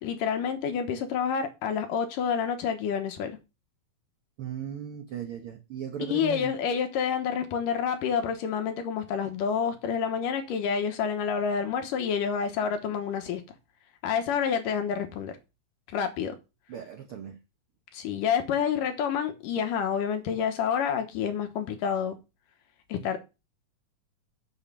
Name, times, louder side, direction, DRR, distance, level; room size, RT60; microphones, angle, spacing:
voice 1, 0.0-3.4 6.1-13.4 14.0-15.3 15.9-16.4 17.9-22.2 22.9-23.2, left 7 dB, 75° left, 2.7 m, -28 dB
voice 2, 4.4-6.5 16.7-17.4, right 9 dB, 70° right, 1.3 m, -37 dB
7.2 x 7.1 x 5.7 m
omnidirectional pair, 4.1 m